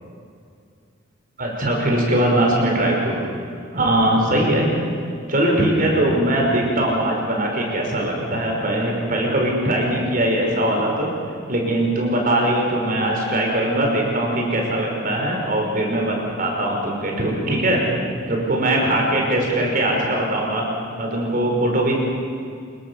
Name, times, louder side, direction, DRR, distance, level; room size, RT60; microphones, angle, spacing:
voice 1, 1.4-3.2 3.7-4.7 5.3-11.1 11.5-17.9 18.3-20.7 21.0-21.9, right 1 dB, 45° right, 0 dB, 5.2 m, -21 dB
25.5 x 22.5 x 7.1 m, 2.4 s
head